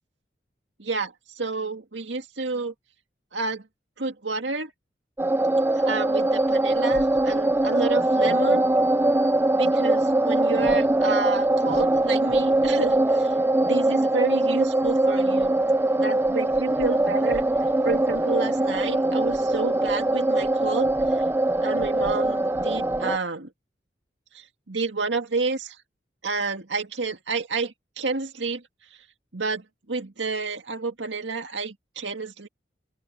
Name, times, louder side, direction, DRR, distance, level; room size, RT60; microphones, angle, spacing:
voice 1, 0.8-2.7 3.3-3.7 4.0-4.7 5.8-8.6 9.5-15.6 15.9-17.4 17.8-21.2 21.6-23.5 24.3-25.8 26.2-28.6 29.3-32.5, right 3 dB, 85° right, 2.1 m, -30 dB
sound 1, 5.2-23.2, right 2 dB, 15° right, 0.5 m, -22 dB
open air
head